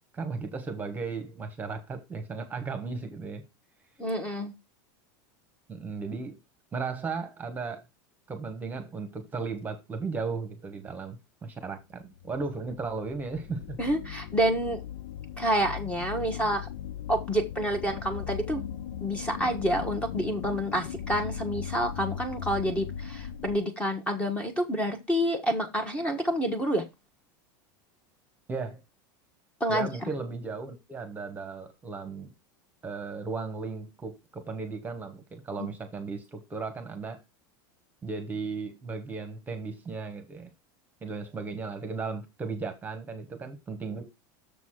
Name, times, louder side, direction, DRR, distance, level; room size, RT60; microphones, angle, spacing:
voice 1, 0.1-3.4 5.7-6.4 6.7-7.8 8.3-13.8 28.5-28.8 29.7-32.3 32.8-37.2 38.0-40.5 41.0-44.0, right 4 dB, 15° right, 1.2 m, -36 dB
voice 2, 4.0-4.5 13.8-14.8 15.4-16.7 17.1-18.6 19.0-26.8 29.6-29.9, equal, 10° left, 1.3 m, -28 dB
sound 1, 11.9-23.6, left 9 dB, 70° left, 0.6 m, -38 dB
6.9 x 4.1 x 6.4 m
supercardioid pair, 145°, 11 cm